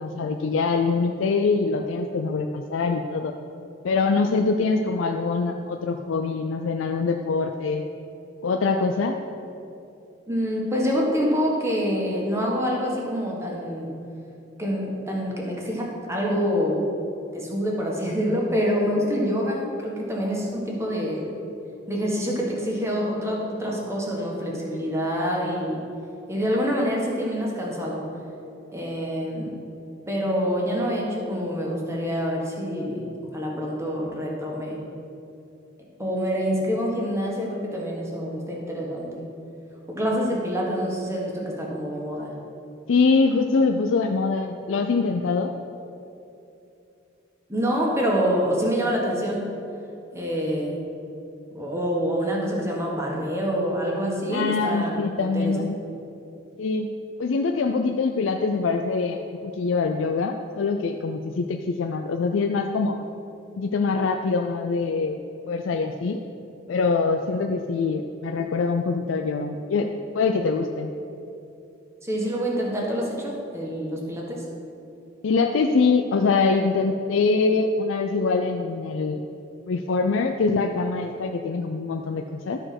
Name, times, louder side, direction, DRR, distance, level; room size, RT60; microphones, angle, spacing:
voice 1, 0.0-3.3 3.8-7.9 8.4-9.2 42.9-45.5 54.3-55.8 56.6-56.9 57.2-63.0 63.6-66.2 66.7-69.9 70.1-70.9 75.2-79.2 79.7-82.6, left 4 dB, 85° left, 4 dB, 0.4 m, -24 dB
voice 2, 10.3-13.9 14.6-16.8 17.3-21.3 21.9-25.8 26.3-28.0 28.7-29.6 30.1-33.0 33.3-34.8 36.0-39.2 39.9-42.3 47.5-49.5 50.1-50.8 51.5-55.6 72.0-74.4, equal, 15° right, -3 dB, 1.5 m, -26 dB
12.5 x 4.5 x 5.9 m, 2.8 s
head